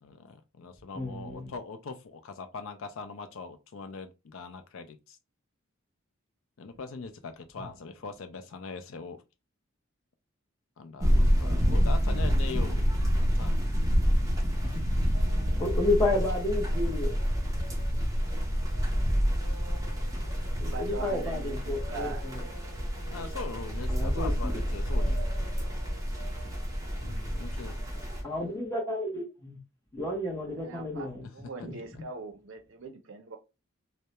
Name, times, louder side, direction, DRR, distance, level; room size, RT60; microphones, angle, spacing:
voice 1, 0.0-5.2 6.6-9.2 10.8-12.9 13.1-13.6 19.9-20.1 23.1-25.2 26.9-27.8, left 4 dB, 70° left, 0.4 m, -41 dB
voice 2, 0.9-1.5 7.6-7.7 11.4-11.6 14.7-14.8 15.6-17.1 20.6-22.4 23.9-24.6 28.2-29.6 29.9-31.3 31.6-31.7, left 2 dB, 15° left, 0.8 m, -31 dB
sound 1, 11.0-28.2, equal, 15° right, 0.5 m, -28 dB
sound 2, 15.1-28.6, right 2 dB, 50° left, 1.3 m, -51 dB
voice 3, 20.6-22.3 30.5-33.4, right 4 dB, 65° right, 0.5 m, -42 dB
2.2 x 2.1 x 2.8 m
head